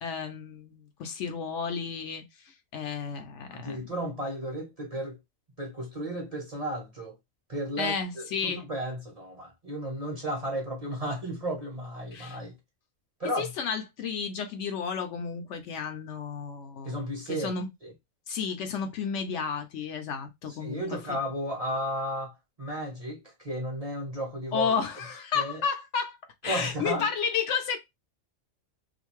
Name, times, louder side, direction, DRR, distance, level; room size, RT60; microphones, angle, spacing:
voice 1, 0.0-2.2 2.7-3.9 7.8-8.6 12.1-12.4 13.4-17.0 17.3-17.7 18.3-21.2 24.5-26.2 26.4-27.8, left 6 dB, 70° left, 0.8 m, -32 dB
voice 2, 3.5-5.2 5.6-7.1 7.5-12.5 13.2-13.5 16.8-17.5 17.8-17.9 20.6-24.7 25.3-25.6 26.4-27.1, right 1 dB, 35° right, 0.8 m, -34 dB
2.5 x 2.5 x 3.0 m
omnidirectional pair, 1.4 m